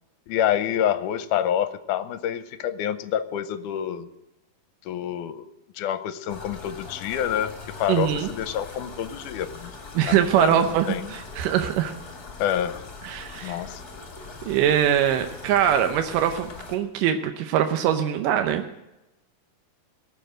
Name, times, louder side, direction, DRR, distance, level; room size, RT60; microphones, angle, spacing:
voice 1, 0.3-4.1 4.9-5.5 5.8-7.5 7.8-9.7 10.1-11.1 12.4-12.9 13.4-13.8, left 10 dB, 80° left, 12 dB, 2.1 m, -27 dB
sound 1, 6.3-16.8, left 4 dB, 35° left, 2.1 m, -41 dB
voice 2, 7.9-8.3 9.9-11.9 13.0-13.6 14.5-18.7, right 9 dB, 85° right, 7 dB, 2.5 m, -22 dB
18.0 x 7.1 x 7.6 m, 0.91 s
omnidirectional pair, 3.8 m